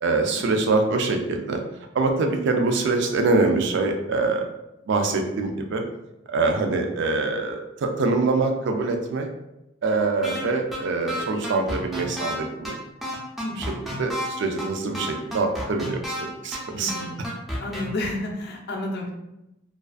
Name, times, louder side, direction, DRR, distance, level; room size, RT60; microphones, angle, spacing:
voice 1, 0.0-1.6 1.9-4.4 4.9-5.8 6.3-9.3 9.8-12.8 13.6-16.9, right 3 dB, 60° right, 3 dB, 0.4 m, -24 dB
sound 1, 10.2-10.4 10.7-10.8 11.1-12.3 12.6-12.7 13.0-14.3 14.6-14.7 14.9-16.2 16.5-16.6 16.9-17.8, equal, ahead, 0.5 m, -30 dB
voice 2, 13.4-13.9 16.7-17.3 17.6-19.1, left 1 dB, 55° left, 0 dB, 0.4 m, -31 dB
2.4 x 2.3 x 2.3 m, 0.91 s
head